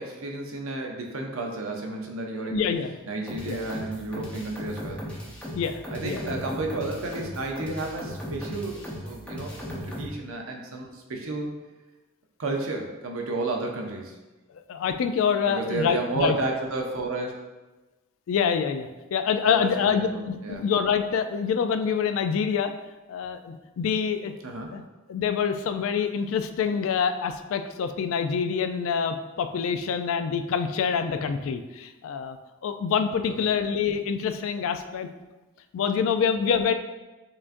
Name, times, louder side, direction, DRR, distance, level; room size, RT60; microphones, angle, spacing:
voice 1, 0.0-2.6 3.1-5.0 5.9-11.5 12.4-14.1 15.5-17.3 19.5-20.6 24.4-24.7 33.3-33.5, right 2 dB, 75° right, 2 dB, 0.6 m, -32 dB
voice 2, 2.3-2.9 3.5-3.7 5.5-6.2 14.7-16.4 18.3-22.7 23.1-24.3 24.7-24.8 25.1-32.4 32.6-35.1 35.7-36.7, left 6 dB, 70° left, 9 dB, 0.3 m, -26 dB
sound 1, 3.3-10.1, equal, 5° left, 0.7 m, -37 dB
5.6 x 2.5 x 2.5 m, 1.1 s
head